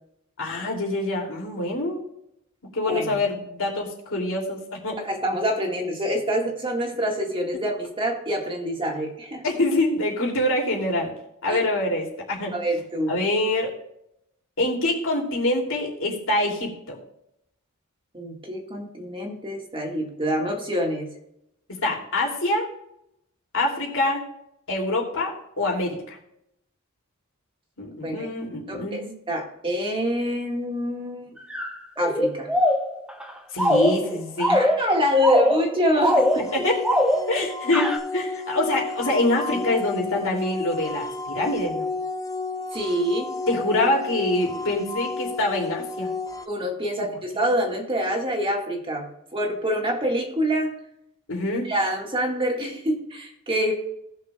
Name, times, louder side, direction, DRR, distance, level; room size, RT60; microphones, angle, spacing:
voice 1, 0.4-2.0 2.6-5.0 7.5-7.6 9.4-11.1 11.4-12.6 13.1-13.7 14.6-17.0 21.8-22.7 23.5-24.2 24.7-26.2 27.8-29.1 33.5-34.7 36.5-36.8 37.3-41.9 43.5-46.1 51.3-51.7, left 2 dB, 65° left, -1 dB, 2.8 m, -25 dB
voice 2, 5.0-9.4 11.5-11.6 12.5-13.1 18.1-21.1 28.0-28.3 28.7-31.3 32.0-32.5 34.5-36.4 42.7-43.3 46.5-49.0 49.3-50.7 51.7-53.7, equal, 25° right, 1 dB, 1.8 m, -26 dB
sound 1, 31.5-37.5 37.7-38.0, equal, 5° right, 1.0 m, -22 dB
sound 2, 36.0-46.5, left 3 dB, 15° left, 0.6 m, -32 dB
19.0 x 6.6 x 2.3 m, 0.79 s
head